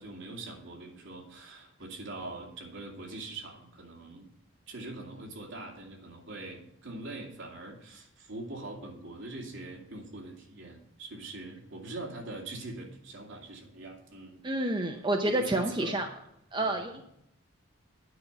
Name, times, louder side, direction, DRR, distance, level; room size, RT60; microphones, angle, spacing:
voice 1, 0.0-4.3 4.7-14.4 15.2-16.0 16.6-16.8, right 2 dB, 65° right, 0 dB, 2.5 m, -42 dB
voice 2, 14.4-16.1 16.5-17.0, right 1 dB, 20° right, 3 dB, 0.6 m, -29 dB
9.6 x 5.4 x 7.9 m, 0.76 s
head